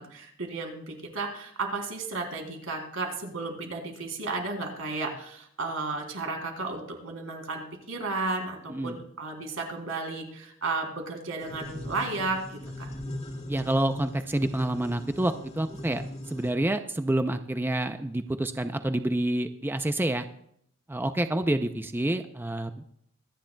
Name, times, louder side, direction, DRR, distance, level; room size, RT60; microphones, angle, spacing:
voice 1, 0.0-12.9, right 3 dB, 90° right, 2 dB, 3.1 m, -33 dB
voice 2, 8.7-9.0 13.5-16.0 16.3-20.3 20.9-22.7, right 1 dB, 10° right, 8 dB, 0.5 m, -28 dB
sound 1, 11.4-16.5, equal, 35° left, 1.8 m, -39 dB
25.0 x 10.0 x 2.2 m, 0.69 s
head